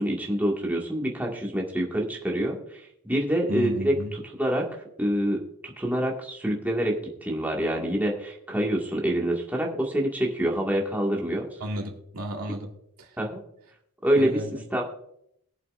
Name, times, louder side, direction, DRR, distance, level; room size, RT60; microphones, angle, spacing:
voice 1, 0.0-3.9 4.4-4.7 5.0-11.4 13.2-13.4 14.0-14.4 14.7-14.9, right 1 dB, 10° right, -2 dB, 1.9 m, -26 dB
voice 2, 3.5-4.1 11.6-12.7 13.0-13.2 14.2-14.6, equal, 80° right, 0 dB, 2.3 m, -33 dB
22.0 x 7.6 x 2.5 m, 0.73 s
head